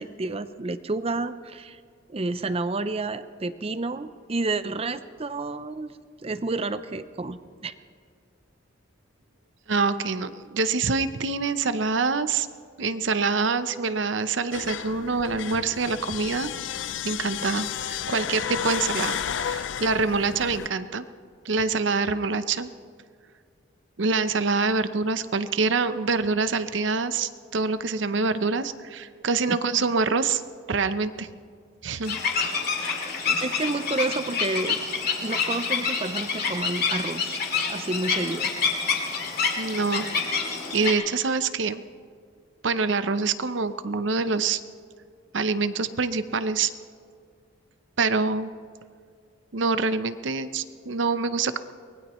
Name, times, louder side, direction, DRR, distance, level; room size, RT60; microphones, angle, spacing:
voice 1, 0.0-1.8 2.1-7.7 29.5-29.6 33.4-34.8 35.2-37.4 37.7-38.5, right 3 dB, 30° right, 12 dB, 0.6 m, -30 dB
voice 2, 9.7-12.5 12.8-16.5 17.0-21.1 21.4-22.7 24.0-30.4 30.7-31.3 31.8-32.2 39.6-41.8 42.6-44.6 45.3-46.7 48.0-48.5 49.5-51.6, right 4 dB, 65° right, 12 dB, 0.7 m, -25 dB
sound 1, 14.5-20.7, left 9 dB, 70° left, 0.4 m, -32 dB
sound 2, 32.1-40.9, left 5 dB, 55° left, 2.2 m, -27 dB
23.5 x 19.5 x 3.1 m, 2.2 s
head